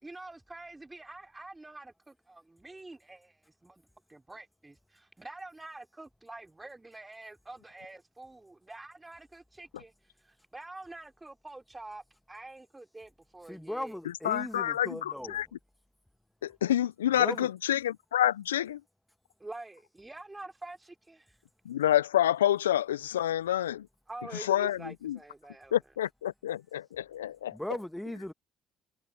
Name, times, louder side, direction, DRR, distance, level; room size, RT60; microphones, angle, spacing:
voice 1, 0.0-3.8 4.1-13.9 19.4-21.4 24.1-25.7, right 2 dB, 15° right, 3.4 m, -47 dB
voice 2, 13.5-15.4 17.2-17.5 27.5-28.3, left 1 dB, 5° left, 2.2 m, -38 dB
voice 3, 14.2-15.5 16.4-18.8 21.7-23.9 24.4-25.2 25.7-27.6, left 11 dB, 85° left, 0.4 m, -28 dB
hypercardioid pair, 50°, 0 cm